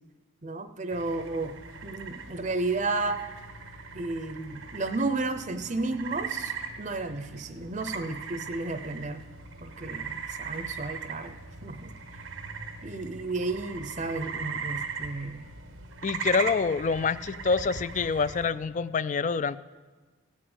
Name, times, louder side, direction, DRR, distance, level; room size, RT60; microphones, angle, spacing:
voice 1, 0.4-1.6 1.8-3.2 3.9-9.2 9.6-11.9 12.8-15.4, right 3 dB, 35° right, 9 dB, 0.6 m, -32 dB
sound 1, 0.9-18.5, right 5 dB, 90° right, 1.2 m, -39 dB
voice 2, 16.0-19.6, left 5 dB, 40° left, 16 dB, 0.3 m, -26 dB
17.0 x 6.1 x 8.1 m, 1.3 s
head